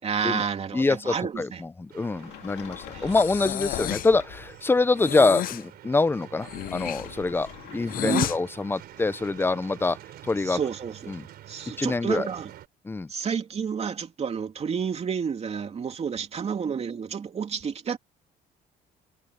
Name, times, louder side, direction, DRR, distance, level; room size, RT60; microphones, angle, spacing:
voice 1, 0.0-1.6 2.9-3.2 3.7-3.8 8.0-8.3 10.4-11.2 11.5-12.5 13.1-18.0, right 6 dB, 40° right, 2.9 m, -30 dB
voice 2, 0.7-10.0 10.2-10.6 11.1-11.2 11.8-12.3 12.8-13.1, left 3 dB, 15° left, 0.7 m, -25 dB
sound 1, 1.9-12.7, right 13 dB, 70° right, 4.1 m, -47 dB
Sliding door, 2.1-4.6 6.2-9.4, left 16 dB, 90° left, 2.4 m, -43 dB
Breathing, 3.1-4.2 5.0-5.6 6.4-8.4, left 12 dB, 60° left, 0.8 m, -31 dB
cardioid pair, 110°, 17 cm